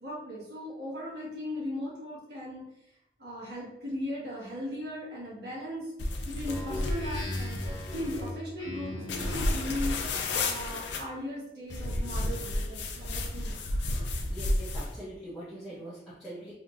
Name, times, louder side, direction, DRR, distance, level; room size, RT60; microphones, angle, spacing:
voice 1, 0.0-2.6 3.2-5.9 6.2-13.5, left 1 dB, 65° right, -6 dB, 1.4 m, -38 dB
sound 1, 6.0-8.3 9.1-11.0 11.7-14.9, left 2 dB, 80° left, 0.5 m, -32 dB
Speech synthesizer, 6.4-9.8, left 1 dB, 20° left, 1.1 m, -38 dB
voice 2, 14.0-16.5, right 1 dB, ahead, -12 dB, 0.8 m, -43 dB
3.5 x 2.7 x 2.5 m, 0.86 s
head